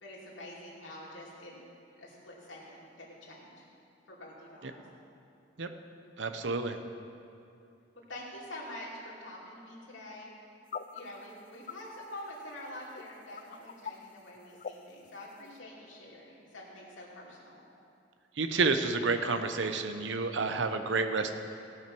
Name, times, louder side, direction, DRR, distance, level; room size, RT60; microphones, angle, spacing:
voice 1, 0.0-1.7 2.0-3.6 4.1-4.9 8.1-10.3 10.9-17.6, left 1 dB, 90° left, -4 dB, 2.7 m, -46 dB
voice 2, 6.2-6.8 18.4-21.3, right 4 dB, 70° right, 8 dB, 0.8 m, -29 dB
sound 1, 10.7-11.0 11.3-11.4 11.6-11.7 12.0-12.1 13.0-13.9 14.4-14.7 15.1-15.5, left 7 dB, 45° left, 0.4 m, -40 dB
16.5 x 5.9 x 6.1 m, 2.6 s
head